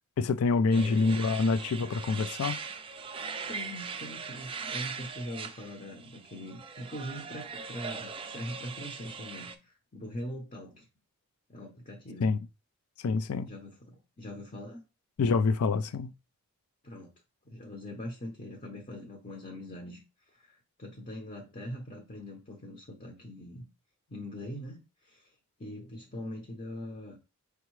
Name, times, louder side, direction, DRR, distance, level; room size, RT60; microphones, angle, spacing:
voice 1, 0.2-2.6 12.2-12.4 13.0-13.5 15.2-16.1, left 4 dB, 75° left, 0.4 m, -26 dB
voice 2, 0.7-1.3 3.5-10.9 11.5-12.3 13.5-14.8 16.8-17.1 17.4-23.7 24.1-27.2, left 1 dB, 35° left, 0.7 m, -42 dB
sound 1, 0.7-9.5, right 5 dB, 25° right, 0.3 m, -40 dB
4.7 x 3.5 x 3.1 m
head